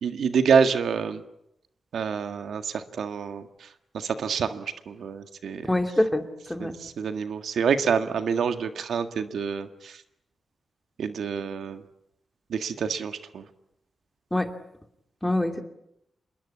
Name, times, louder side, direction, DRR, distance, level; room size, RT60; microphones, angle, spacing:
voice 1, 0.0-1.2 1.9-3.7 3.9-5.7 6.6-10.0 11.0-11.8 12.5-13.4, right 6 dB, 85° right, 8 dB, 1.7 m, -27 dB
voice 2, 5.6-6.8 14.3-14.5 15.2-15.6, left 1 dB, 10° left, 6 dB, 2.7 m, -25 dB
27.5 x 22.0 x 8.6 m, 0.80 s
wide cardioid pair, 110°, 0 cm